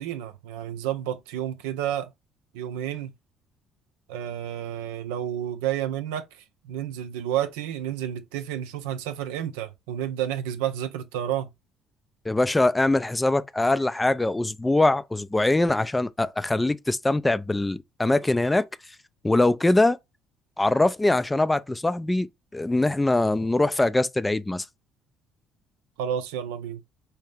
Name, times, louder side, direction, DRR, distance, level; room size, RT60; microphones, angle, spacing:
voice 1, 0.0-2.1 2.5-3.1 4.1-6.2 6.6-11.5 26.0-26.8, right 10 dB, 70° right, 0.4 m, -30 dB
voice 2, 12.3-18.7 19.2-20.0 20.6-22.3 22.5-24.7, left 2 dB, 15° left, 0.3 m, -22 dB
4.5 x 2.7 x 3.3 m
figure-of-eight pair, 50°, 0 cm